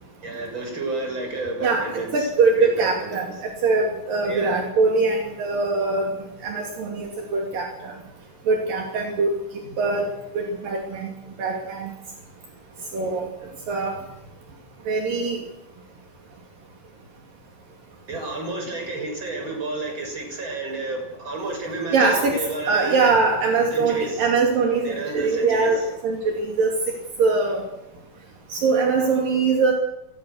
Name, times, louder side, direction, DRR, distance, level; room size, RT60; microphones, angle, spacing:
voice 1, 0.2-3.3 4.2-4.6 18.1-23.0 23.7-24.3 24.8-25.9, right 2 dB, 30° right, 2 dB, 7.7 m, -31 dB
voice 2, 2.1-6.1 6.4-7.9 8.5-9.4 9.8-10.1 10.3-11.1 11.4-11.9 12.9-13.3 13.7-13.9 14.9-15.4 21.9-26.7 27.2-27.6 28.5-29.7, right 4 dB, 70° right, 1 dB, 4.4 m, -22 dB
28.5 x 20.5 x 6.5 m, 0.90 s
omnidirectional pair, 4.1 m